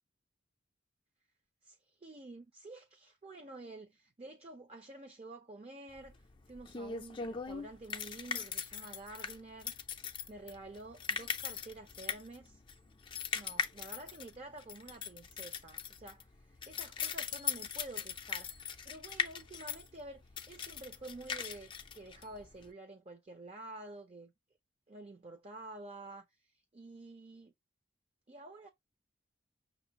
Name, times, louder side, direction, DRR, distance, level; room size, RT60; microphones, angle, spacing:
voice 1, 1.6-6.2 6.5-9.7 10.3-12.6 13.3-18.5 18.8-24.3 24.9-26.3 26.7-27.5 28.3-28.7, right 2 dB, 35° right, 0.6 m, -49 dB
sound 1, 6.0-22.7, left 6 dB, 25° left, 0.4 m, -40 dB
5.8 x 2.5 x 2.8 m
head